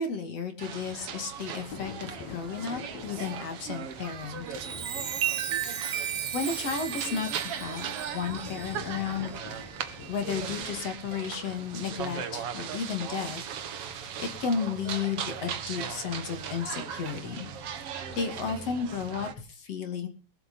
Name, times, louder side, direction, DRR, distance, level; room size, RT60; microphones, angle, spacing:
voice 1, 0.0-4.5 5.8-9.3 10.1-13.5 13.8-17.5 17.9-20.1, left 6 dB, 40° left, 6 dB, 2.9 m, -33 dB
sound 1, 0.6-19.3, right 8 dB, 75° right, 1.3 m, -38 dB
Thunder / Rain, 0.8-12.1, left 7 dB, 60° left, 3.6 m, -47 dB
Chime, 4.4-10.3 10.9-11.2, right 9 dB, 50° right, 2.4 m, -35 dB
23.5 x 7.9 x 5.5 m, 0.37 s
omnidirectional pair, 4.8 m